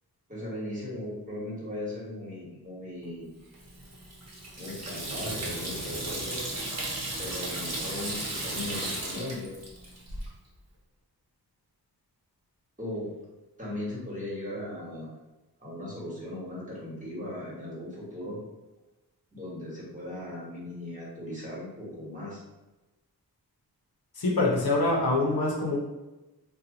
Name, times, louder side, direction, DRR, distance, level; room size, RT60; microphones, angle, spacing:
voice 1, 0.3-3.4 4.6-6.4 7.2-9.5 12.8-13.1 13.6-15.1 15.6-18.4 19.3-22.4, left 1 dB, 20° right, -7 dB, 1.4 m, -38 dB
Water tap faucet / Sink (filling or washing), 3.5-10.3, right 1 dB, 40° right, 0.8 m, -35 dB
voice 2, 24.2-25.8, left 2 dB, 65° left, -2 dB, 0.7 m, -25 dB
2.9 x 2.2 x 3.7 m, 1.1 s
wide cardioid pair, 85°, 39 cm